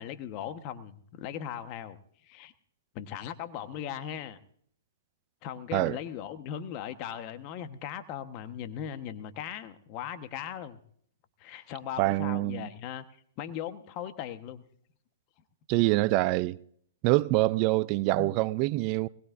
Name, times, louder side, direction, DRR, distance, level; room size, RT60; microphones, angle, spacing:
voice 1, 0.0-2.0 2.2-2.5 2.9-4.4 5.4-10.8 11.4-13.0 13.4-14.6 18.2-18.3, left 9 dB, 40° left, 1.3 m, -38 dB
voice 2, 12.0-12.7 15.7-16.6 17.0-19.1, right 19 dB, 40° right, 0.5 m, -25 dB
21.5 x 20.5 x 2.6 m
hypercardioid pair, 125°, 0 cm